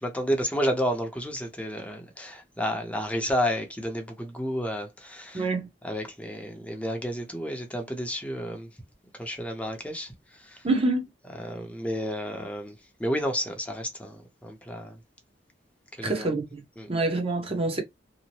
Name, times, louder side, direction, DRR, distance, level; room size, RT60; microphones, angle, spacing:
voice 1, 0.0-5.5 5.8-8.7 9.2-10.1 10.4-10.6 11.4-12.7 13.0-15.0 16.0-16.3 16.8-16.9, equal, 10° left, 0.7 m, -31 dB
voice 2, 5.3-5.7 10.6-11.0 16.0-16.6 16.9-17.8, right 2 dB, 35° right, 0.8 m, -26 dB
2.9 x 2.0 x 2.8 m
head